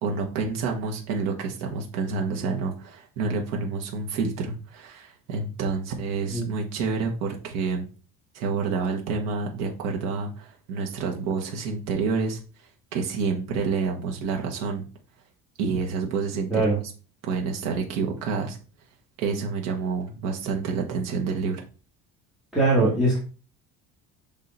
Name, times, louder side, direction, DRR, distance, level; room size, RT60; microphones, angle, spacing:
voice 1, 0.0-7.9 8.3-14.8 15.6-16.7 17.2-18.6 19.2-21.6, right 4 dB, 85° right, 1 dB, 1.3 m, -28 dB
voice 2, 22.5-23.2, right 2 dB, ahead, -9 dB, 1.6 m, -21 dB
6.4 x 3.6 x 4.1 m, 0.36 s
cardioid pair, 180°, 32 cm